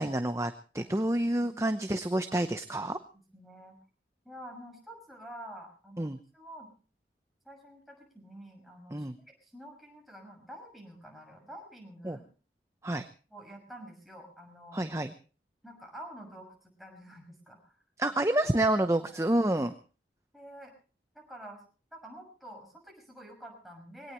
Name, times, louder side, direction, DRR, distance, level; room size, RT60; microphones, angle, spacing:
voice 1, 0.0-3.0 6.0-6.2 8.9-9.1 12.0-12.2 12.8-13.1 14.7-15.1 18.0-19.7, right 1 dB, 15° right, 8 dB, 0.8 m, -28 dB
voice 2, 1.4-1.8 3.1-3.8 4.2-6.7 7.4-12.3 13.3-14.8 15.6-17.7 19.1-19.2 20.3-20.7 21.1-21.6 21.9-24.1, right 1 dB, ahead, 0 dB, 6.0 m, -48 dB
22.5 x 18.0 x 3.1 m, 0.37 s
head